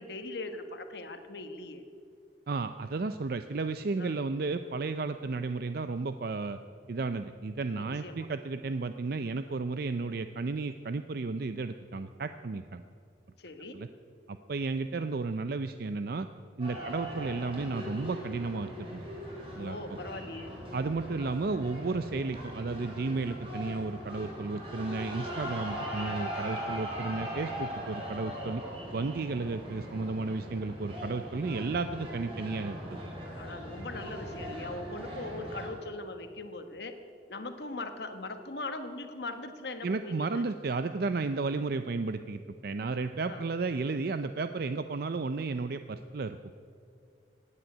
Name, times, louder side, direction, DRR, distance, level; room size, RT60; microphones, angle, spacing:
voice 1, 0.0-1.9 4.0-4.2 7.7-8.3 13.4-13.8 16.7-16.9 19.6-20.5 33.4-36.9 37.3-40.4 43.3-43.4, left 2 dB, 65° left, 7 dB, 1.2 m, -40 dB
voice 2, 2.5-6.6 6.9-12.8 13.7-13.9 14.3-16.3 16.6-19.1 19.6-19.8 20.7-28.6 28.9-33.0 39.8-46.4, right 3 dB, 55° right, 10 dB, 0.5 m, -33 dB
sound 1, 16.6-35.7, equal, 30° right, 4.6 m, -40 dB
17.0 x 9.0 x 9.1 m, 2.4 s
head